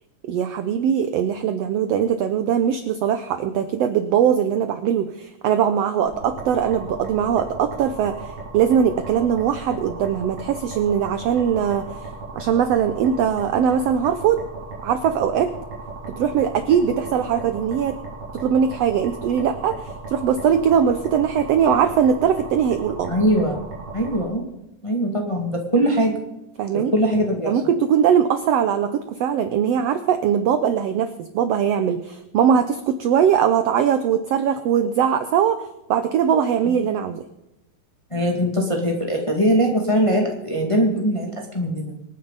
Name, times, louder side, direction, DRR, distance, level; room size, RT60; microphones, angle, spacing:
voice 1, 0.3-12.1 12.3-14.4 14.8-15.5 16.1-18.0 18.3-23.1 26.6-26.9 27.5-35.6 35.9-37.2, right 8 dB, 75° right, 9 dB, 1.5 m, -21 dB
sound 1, 6.1-24.2, right 3 dB, 45° right, 3.8 m, -36 dB
voice 2, 23.1-23.6 23.9-24.5 24.8-26.1 26.9-27.5 36.6-36.8 38.1-42.0, equal, 10° left, 1 dB, 1.6 m, -21 dB
25.5 x 9.5 x 4.0 m, 0.91 s
omnidirectional pair, 3.6 m